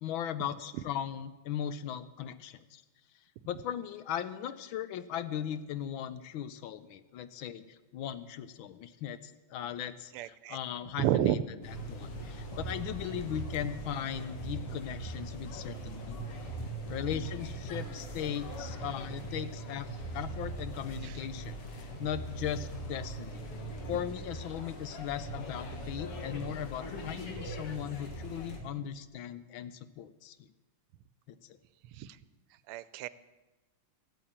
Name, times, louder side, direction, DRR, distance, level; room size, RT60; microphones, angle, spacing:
voice 1, 0.0-2.8 3.5-11.4 11.9-16.2 16.9-19.9 20.1-23.5 23.9-30.5 31.3-31.6, left 10 dB, 75° left, 14 dB, 1.4 m, -38 dB
voice 2, 10.1-10.6 11.0-11.4 16.6-16.7 21.0-21.1 32.0-32.2 32.7-33.1, right 12 dB, 85° right, 17 dB, 1.5 m, -30 dB
sound 1, 11.6-28.6, right 1 dB, 90° left, 2.8 m, -41 dB
13.5 x 8.8 x 8.6 m, 1.2 s
omnidirectional pair, 2.4 m